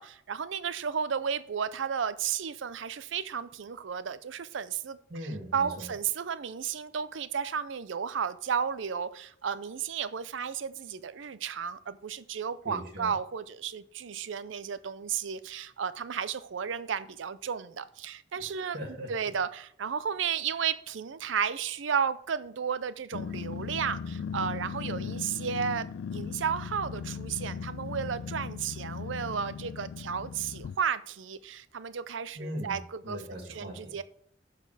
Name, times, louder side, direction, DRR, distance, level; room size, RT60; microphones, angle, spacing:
voice 1, 0.0-5.0 5.5-18.8 19.1-33.2 33.5-34.0, right 7 dB, 80° right, 14 dB, 0.5 m, -33 dB
voice 2, 5.1-5.9 12.6-13.1 18.4-19.1 32.4-34.0, equal, 55° right, 1 dB, 2.2 m, -40 dB
Growling, 23.1-30.8, left 6 dB, 85° left, 0.3 m, -38 dB
12.0 x 4.2 x 4.9 m, 0.63 s
head